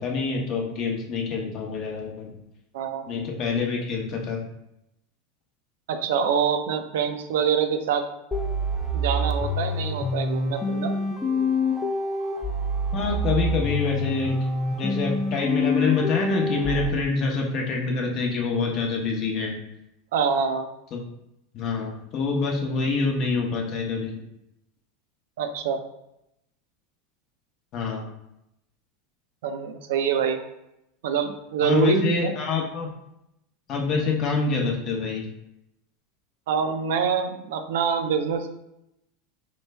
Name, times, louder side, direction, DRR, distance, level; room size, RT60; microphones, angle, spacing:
voice 1, 0.0-2.4 3.1-4.4 12.9-14.4 14.8-19.6 20.9-21.0 21.5-24.1 27.7-28.1 31.6-32.9 33.7-35.3, left 4 dB, 45° left, 0 dB, 0.8 m, -26 dB
voice 2, 2.7-3.1 5.9-8.1 8.9-10.9 20.1-20.7 25.4-25.8 29.4-30.4 31.0-32.3 36.5-38.5, right 7 dB, 70° right, 7 dB, 0.3 m, -25 dB
sound 1, 8.3-16.9, left 1 dB, 20° left, 0.4 m, -26 dB
3.1 x 2.1 x 3.2 m, 0.84 s
hypercardioid pair, 90°, 0 cm